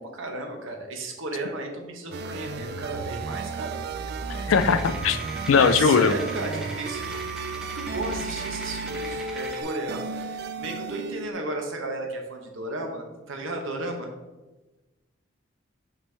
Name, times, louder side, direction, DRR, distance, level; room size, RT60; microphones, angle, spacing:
voice 1, 0.0-3.8 5.6-7.2 7.5-14.1, right 2 dB, 75° right, 3 dB, 1.0 m, -34 dB
sound 1, 2.1-11.3, right 4 dB, 50° right, 0.3 m, -33 dB
voice 2, 4.5-5.2 5.5-6.1, left 5 dB, 75° left, 12 dB, 0.4 m, -19 dB
sound 2, 4.5-9.6, right 1 dB, 5° right, 0.7 m, -40 dB
5.8 x 5.4 x 3.3 m, 1.2 s
head